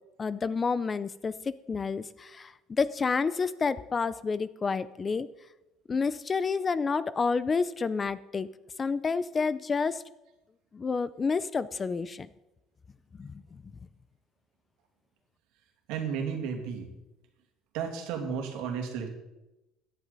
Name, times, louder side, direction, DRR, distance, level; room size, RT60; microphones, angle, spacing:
voice 1, 0.2-1.3 1.7-5.3 5.9-8.5 8.8-10.0 10.7-12.3 13.2-13.3, left 5 dB, 25° left, 16 dB, 0.5 m, -29 dB
voice 2, 15.9-16.9 17.7-19.1, right 6 dB, 80° right, 3 dB, 2.6 m, -33 dB
17.0 x 11.0 x 4.1 m, 0.99 s
cardioid pair, 135°, 0 cm